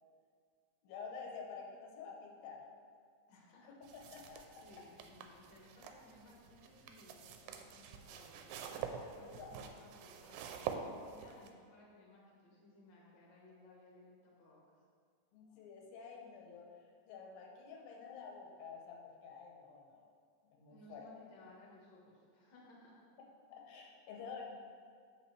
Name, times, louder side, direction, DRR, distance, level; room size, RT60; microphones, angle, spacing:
voice 1, 0.8-2.6 3.6-3.7 4.1-4.4 9.2-9.5 15.3-16.7 17.1-20.0 20.4-21.1 23.5-24.4, left 5 dB, 85° left, 0 dB, 2.7 m, -50 dB
voice 2, 3.3-4.3 4.6-10.6 11.0-14.8 20.7-23.0, left 2 dB, 50° left, -4 dB, 1.4 m, -61 dB
sound 1, 3.8-11.5, right 7 dB, 90° right, 2.3 m, -47 dB
8.4 x 5.9 x 3.2 m, 2.1 s
omnidirectional pair, 4.0 m